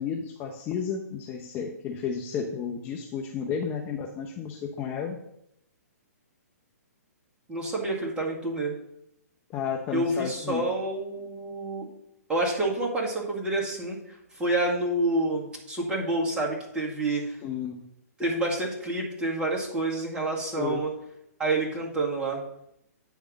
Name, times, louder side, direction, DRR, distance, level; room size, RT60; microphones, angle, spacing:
voice 1, 0.0-5.2 9.5-10.6 17.4-17.8 20.6-20.8, left 7 dB, 25° left, 0 dB, 0.9 m, -32 dB
voice 2, 7.5-8.8 9.9-11.9 12.3-14.0 14.4-17.4 18.2-20.9 21.4-22.4, right 2 dB, 10° right, -3 dB, 2.1 m, -28 dB
9.1 x 3.5 x 6.2 m, 0.77 s
hypercardioid pair, 130°, 9 cm